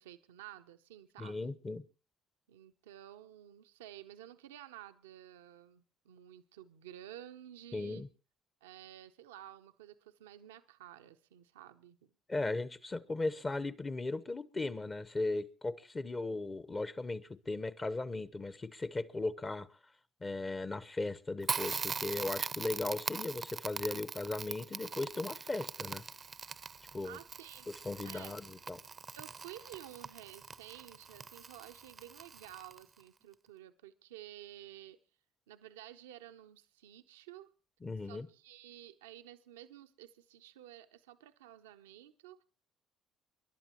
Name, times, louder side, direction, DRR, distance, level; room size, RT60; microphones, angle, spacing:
voice 1, 0.0-1.6 2.5-8.0 8.6-12.1 27.0-27.7 28.0-28.4 29.1-35.0 35.5-37.5 38.0-42.4, right 12 dB, 90° right, 0.6 m, -52 dB
voice 2, 1.2-1.8 7.7-8.1 12.3-19.7 20.2-26.0 26.9-27.2 27.8-28.8 37.8-38.3, left 2 dB, 25° left, 1.0 m, -37 dB
Crackle, 21.4-33.0, right 5 dB, 35° right, 0.6 m, -42 dB
29.5 x 11.5 x 3.0 m
hypercardioid pair, 60°, 0 cm